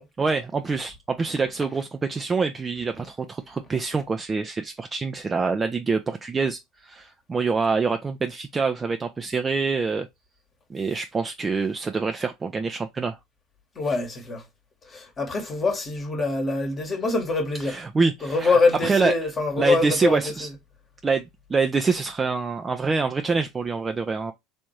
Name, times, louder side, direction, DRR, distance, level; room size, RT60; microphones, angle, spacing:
voice 1, 0.2-10.1 10.7-13.2 17.6-19.3 19.6-20.5 21.0-24.3, right 4 dB, 20° right, 0.4 m, -26 dB
voice 2, 13.8-14.4 14.9-17.8 18.2-20.3, left 3 dB, 30° left, 1.1 m, -24 dB
3.4 x 2.6 x 3.0 m
figure-of-eight pair, 70°, 0 cm